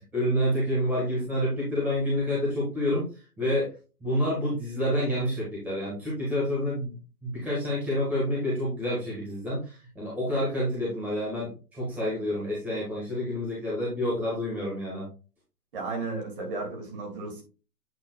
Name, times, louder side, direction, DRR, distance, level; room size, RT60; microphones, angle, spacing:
voice 1, 0.1-3.7 4.0-6.9 7.2-15.1, equal, 5° right, -8 dB, 1.6 m, -28 dB
voice 2, 15.7-17.4, right 3 dB, 35° right, 2 dB, 2.3 m, -34 dB
8.4 x 5.8 x 2.3 m, 0.34 s
hypercardioid pair, 160°, 47 cm